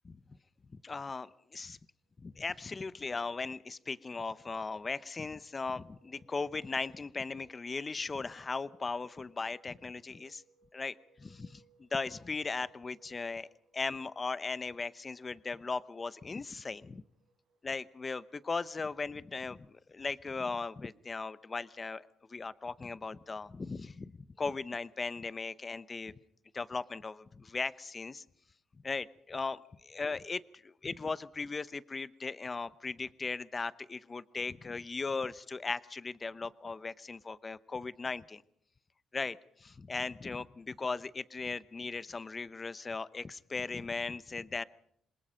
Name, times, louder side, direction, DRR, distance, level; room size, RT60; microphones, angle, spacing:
voice 1, 0.7-1.8 2.2-10.4 10.7-13.5 13.7-17.0 17.6-24.1 24.4-26.1 26.5-28.2 28.8-38.4 39.1-44.6, left 4 dB, 30° left, 16 dB, 0.8 m, -38 dB
sound 1, 2.0-19.8, right 4 dB, 80° right, 3.8 m, -69 dB
27.0 x 21.0 x 5.2 m, 0.70 s
cardioid pair, 90°, 0 cm